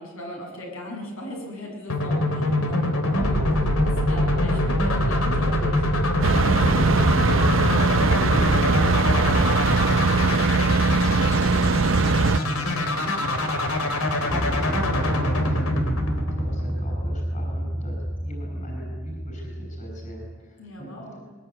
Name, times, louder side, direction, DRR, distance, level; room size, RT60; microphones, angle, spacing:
voice 1, 0.0-7.5 20.6-21.1, left 1 dB, 70° left, 0 dB, 7.1 m, -38 dB
sound 1, 1.9-16.8, left 1 dB, 85° left, 3.7 m, -24 dB
sound 2, 3.2-11.0 14.3-20.4, equal, 5° right, 1.1 m, -30 dB
sound 3, 6.2-12.4, right 3 dB, 65° right, 0.7 m, -21 dB
voice 2, 8.1-18.0 18.2-21.2, equal, 35° left, 1 dB, 6.3 m, -40 dB
21.5 x 21.0 x 9.7 m, 1.3 s
head